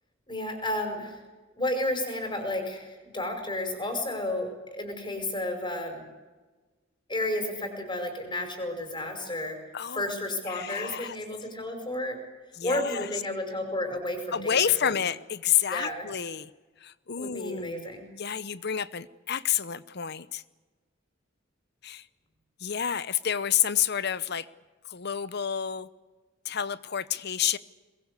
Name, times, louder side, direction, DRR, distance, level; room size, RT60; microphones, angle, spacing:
voice 1, 0.3-1.2 1.6-6.1 7.1-9.6 9.9-12.2 12.6-14.9 15.7-16.1 17.2-18.1, left 1 dB, 25° left, 5 dB, 5.4 m, -32 dB
voice 2, 9.7-10.1 10.4-11.2 12.6-13.1 14.3-16.5 16.8-17.9 18.2-20.4 21.8-22.1 22.6-24.5 24.8-25.9 26.4-27.6, left 9 dB, 60° left, 17 dB, 0.9 m, -29 dB
23.0 x 21.5 x 8.3 m, 1.3 s
head